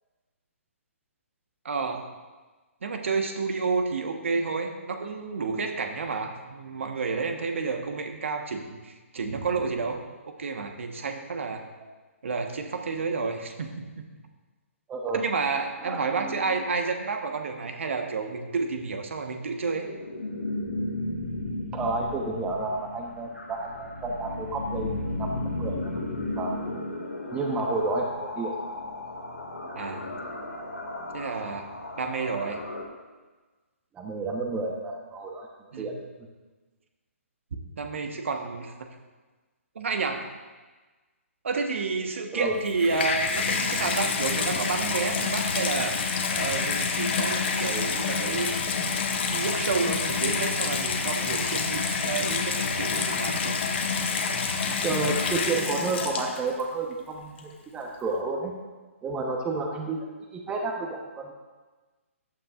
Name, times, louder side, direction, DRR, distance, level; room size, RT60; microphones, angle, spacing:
voice 1, 1.6-2.1 2.8-10.0 10.4-11.6 12.2-14.1 15.1-19.9 29.7-30.1 31.1-31.6 32.0-32.6 35.7-35.9 37.8-38.7 39.7-40.3 41.4-46.0 46.3-48.6 49.3-53.6, right 4 dB, 60° right, 5 dB, 1.3 m, -30 dB
voice 2, 14.9-15.2 15.8-16.5 21.7-26.0 26.3-26.5 27.3-28.5 33.9-35.5 35.8-35.9 42.3-42.5 54.8-58.5 59.0-60.1 60.3-61.3, right 3 dB, 15° right, 2 dB, 1.1 m, -31 dB
sound 1, 19.4-32.8, left 2 dB, 90° left, 2.2 m, -35 dB
Water tap faucet / Bathtub (filling or washing), 42.5-56.6 57.4-57.5, left 5 dB, 50° left, 1.4 m, -27 dB
14.5 x 9.5 x 2.5 m, 1.3 s
figure-of-eight pair, 135°, 8 cm